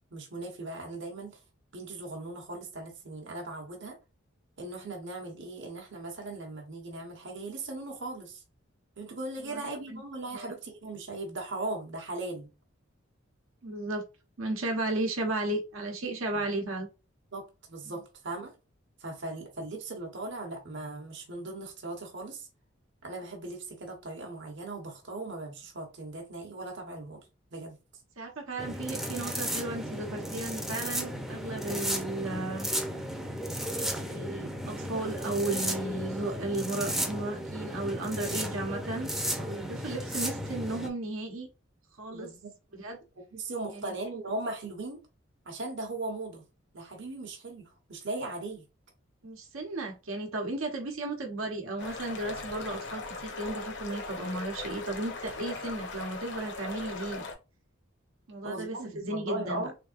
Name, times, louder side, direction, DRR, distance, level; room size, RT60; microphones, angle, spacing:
voice 1, 0.1-1.4 1.7-4.0 4.6-8.4 9.0-12.5 16.3-16.6 17.3-18.5 19.0-22.5 23.0-27.2 27.5-27.8 42.1-42.5 43.3-45.0 45.5-46.4 46.7-48.7 58.4-59.7, right 2 dB, 60° right, 1.0 m, -38 dB
voice 2, 9.4-10.0 10.3-10.5 13.6-14.0 14.4-16.9 28.2-32.7 34.1-39.1 39.4-41.5 42.0-42.3 42.7-43.0 43.7-43.9 49.2-57.3 58.3-59.6, right 2 dB, 80° right, 1.0 m, -34 dB
sound 1, 28.6-40.9, equal, ahead, 0.6 m, -34 dB
sound 2, 51.8-57.3, left 3 dB, 60° left, 1.0 m, -39 dB
3.5 x 3.4 x 2.5 m
head